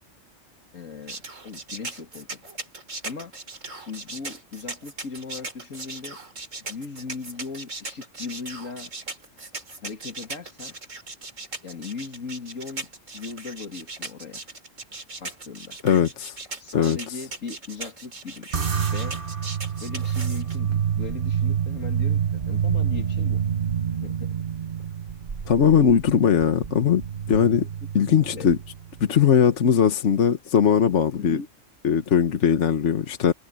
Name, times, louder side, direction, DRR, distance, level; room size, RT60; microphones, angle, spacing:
voice 1, 0.7-2.4 3.0-3.3 3.8-6.2 6.6-8.9 9.8-10.8 11.6-12.9 13.1-14.4 15.2-15.8 16.6-18.5 18.9-19.2 19.8-23.4 24.0-24.4 28.0-28.5 31.2-31.4, left 5 dB, 85° left, 2.8 m, -38 dB
sound 1, 1.1-20.6, right 3 dB, 80° right, 4.0 m, -38 dB
voice 2, 15.8-16.4 16.7-17.2 25.5-27.0 27.3-27.7 27.9-28.6 29.0-31.4 31.8-33.3, left 7 dB, 65° left, 1.4 m, -20 dB
sound 2, 18.5-29.1, right 8 dB, 45° right, 1.2 m, -27 dB
omnidirectional pair, 1.3 m